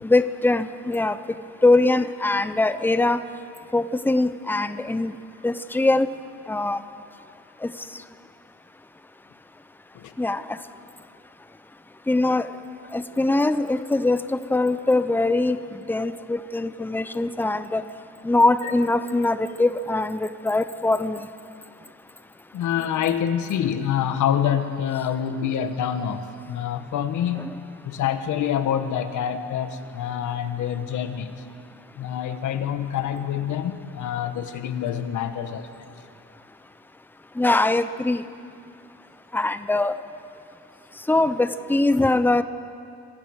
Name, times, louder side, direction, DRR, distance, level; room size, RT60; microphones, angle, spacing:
voice 1, 0.0-1.2 1.6-3.2 3.7-5.1 5.4-6.1 6.5-6.8 7.6-7.7 10.2-10.6 12.1-12.5 12.9-15.6 15.9-17.8 18.2-21.2 37.4-38.2 39.3-40.0 41.1-42.4, left 2 dB, 5° left, 12 dB, 0.8 m, -22 dB
voice 2, 22.5-27.5 27.8-31.5 31.9-35.8, left 9 dB, 75° left, 9 dB, 1.4 m, -26 dB
25.5 x 15.5 x 6.5 m, 2.5 s
cardioid pair, 90°, 30 cm